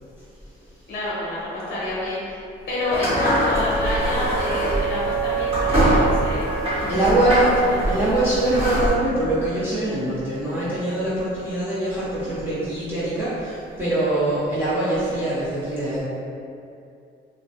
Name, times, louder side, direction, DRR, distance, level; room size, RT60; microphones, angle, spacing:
voice 1, 0.9-6.5 6.8-7.0 7.5-7.9, left 1 dB, 50° left, -8 dB, 0.7 m, -28 dB
Wind instrument woodwind instrument, 2.8-7.3, right 5 dB, 70° right, 0.5 m, -28 dB
sound 1, 2.9-8.9, equal, 30° right, 1.1 m, -24 dB
voice 2, 6.9-7.5 7.8-16.0, right 1 dB, 10° right, -13 dB, 0.6 m, -23 dB
2.2 x 2.0 x 2.7 m, 2.5 s
cardioid pair, 90°, 20 cm